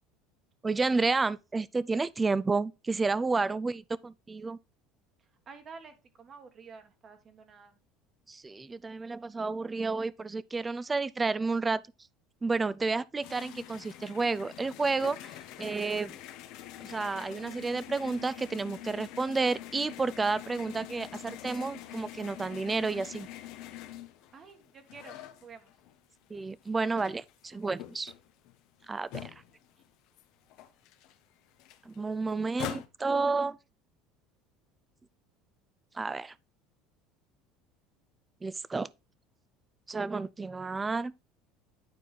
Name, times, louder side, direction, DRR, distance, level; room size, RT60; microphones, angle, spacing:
voice 1, 0.6-4.6 8.3-11.8 12.4-16.2 16.8-23.3 26.3-28.1 28.9-29.3 31.9-33.6 35.9-36.3 38.4-38.9 39.9-41.1, right 3 dB, 15° right, 0.4 m, -31 dB
voice 2, 5.5-7.8 24.3-25.7, right 5 dB, 35° right, 1.3 m, -50 dB
sound 1, 13.2-26.0 26.4-29.9 30.2-30.3 30.5-32.9, left 12 dB, 65° left, 0.9 m, -45 dB
9.3 x 4.5 x 3.2 m
supercardioid pair, 110°, 0 cm